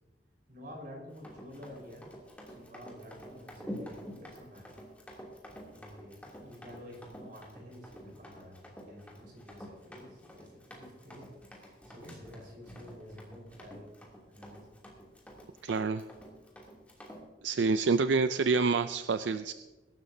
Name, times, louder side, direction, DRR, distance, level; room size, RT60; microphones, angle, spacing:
voice 1, 0.5-2.1 2.5-4.8 5.7-13.9 14.3-14.7, left 1 dB, 55° right, -1 dB, 4.8 m, -50 dB
Run, 1.1-17.2, equal, 10° left, 2.8 m, -48 dB
voice 2, 15.6-16.0 17.4-19.5, right 4 dB, 90° right, 10 dB, 0.5 m, -27 dB
22.5 x 12.5 x 2.8 m, 1.1 s
head